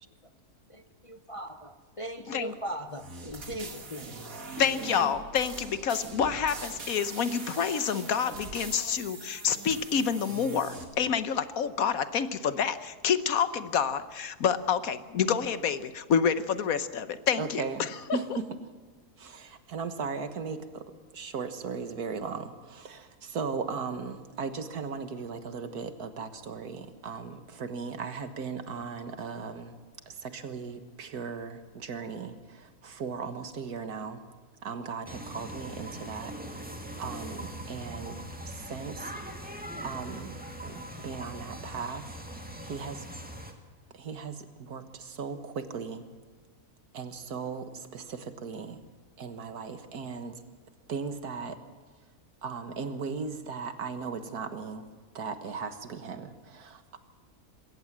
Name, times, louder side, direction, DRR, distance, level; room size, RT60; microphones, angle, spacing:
voice 1, 1.1-4.1, right 1 dB, 30° left, 8 dB, 0.6 m, -39 dB
sound 1, 2.9-10.8, right 3 dB, 60° right, 2.7 m, -42 dB
voice 2, 4.6-17.6, left 7 dB, 65° left, 13 dB, 1.3 m, -28 dB
voice 3, 17.4-18.5 19.2-20.8 21.1-29.7 30.1-34.2 34.6-36.3 36.8-38.2 38.4-39.1 39.8-42.2 42.6-43.1 43.9-46.0 46.9-48.8 49.2-50.4 50.9-51.6 52.4-54.9 55.1-57.0, right 5 dB, 80° right, 9 dB, 2.0 m, -37 dB
sound 2, 35.1-43.5, right 1 dB, 5° right, 2.1 m, -41 dB
21.5 x 17.5 x 7.4 m, 1.5 s
omnidirectional pair, 1.6 m